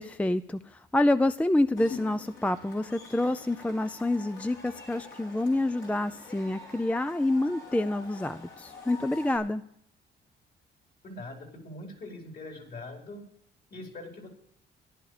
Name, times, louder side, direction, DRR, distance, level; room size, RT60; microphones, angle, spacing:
voice 1, 0.0-9.6, left 1 dB, 5° left, 12 dB, 0.4 m, -27 dB
Cheering / Crowd, 1.8-9.4, left 3 dB, 65° left, 5.0 m, -46 dB
voice 2, 11.0-13.2 13.7-14.3, left 2 dB, 50° left, 1 dB, 4.5 m, -42 dB
14.5 x 11.0 x 5.0 m, 0.69 s
cardioid pair, 90°, 20 cm